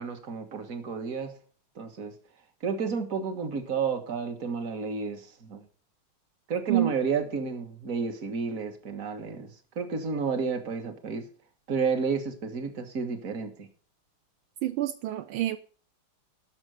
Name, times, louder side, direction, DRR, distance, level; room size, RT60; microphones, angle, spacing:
voice 1, 0.0-1.3 1.8-2.1 2.6-5.7 6.5-11.3 11.7-13.7, right 5 dB, 45° right, 1.8 m, -31 dB
voice 2, 14.6-15.6, right 14 dB, 80° right, 1.5 m, -27 dB
12.5 x 6.1 x 6.4 m
omnidirectional pair, 2.3 m